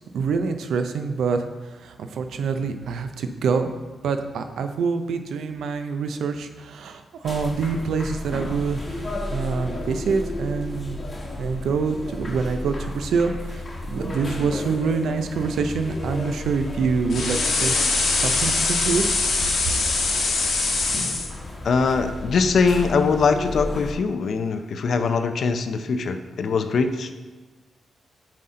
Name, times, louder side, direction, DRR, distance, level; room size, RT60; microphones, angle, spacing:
voice 1, 0.1-3.7 4.0-11.0 11.4-13.6 13.9-19.0, right 5 dB, 85° right, 8 dB, 0.5 m, -26 dB
sound 1, 7.2-23.9, left 1 dB, 25° left, 1.1 m, -33 dB
sound 2, 17.1-21.3, left 3 dB, 80° left, 1.3 m, -23 dB
voice 2, 21.6-27.2, left 5 dB, 60° left, 8 dB, 0.5 m, -22 dB
7.4 x 4.2 x 3.8 m, 1.3 s
wide cardioid pair, 140°, 0 cm